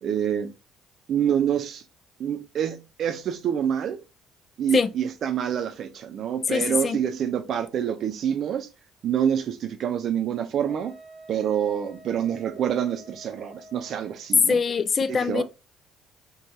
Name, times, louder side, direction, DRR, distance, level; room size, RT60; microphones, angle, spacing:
voice 1, 0.0-0.5 1.1-1.8 2.2-4.0 4.6-8.7 9.0-10.9 11.3-14.6 15.1-15.4, right 9 dB, 55° right, 0.5 m, -26 dB
voice 2, 6.5-7.0 14.5-15.4, left 5 dB, 40° left, 0.3 m, -23 dB
Wind instrument woodwind instrument, 10.6-14.3, right 1 dB, 10° left, 0.9 m, -48 dB
3.1 x 2.2 x 2.6 m
hypercardioid pair, 55°, 0 cm